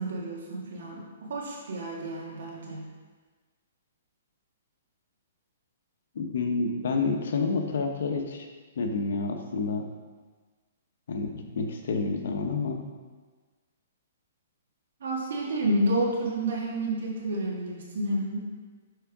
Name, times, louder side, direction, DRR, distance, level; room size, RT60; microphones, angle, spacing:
voice 1, 0.0-2.8 15.0-18.5, right 1 dB, 70° right, -3 dB, 2.1 m, -30 dB
voice 2, 6.1-8.5 8.8-9.8 11.1-12.8, left 4 dB, 65° left, 4 dB, 1.0 m, -29 dB
6.7 x 4.6 x 4.8 m, 1.4 s
hypercardioid pair, 160°, 0 cm